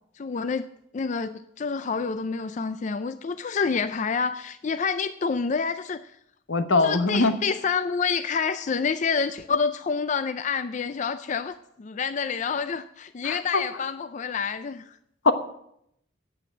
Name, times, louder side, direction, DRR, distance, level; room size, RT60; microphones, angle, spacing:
voice 1, 0.2-0.7 0.9-6.1 6.8-15.0, left 5 dB, 40° left, 0.4 m, -28 dB
voice 2, 6.5-7.3 13.2-13.6 15.2-15.3, left 3 dB, 80° left, 1.1 m, -21 dB
8.6 x 7.9 x 8.8 m
head